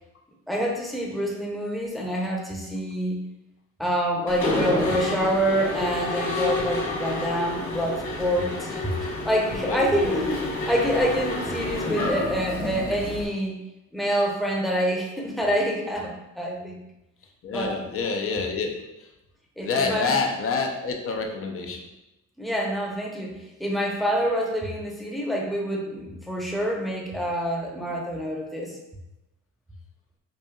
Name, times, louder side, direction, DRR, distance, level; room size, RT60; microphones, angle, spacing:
voice 1, 0.5-3.2 3.8-8.8 9.2-13.6 13.9-16.8 17.5-17.8 19.6-20.1 22.4-28.8, equal, ahead, -2 dB, 0.8 m, -26 dB
Mechanisms, 4.3-13.2, left 2 dB, 70° left, 1.2 m, -29 dB
voice 2, 9.5-10.3 17.4-19.1 19.6-21.8, left 4 dB, 45° left, 3 dB, 0.7 m, -28 dB
5.0 x 2.6 x 2.3 m, 0.93 s
cardioid pair, 90°, 30 cm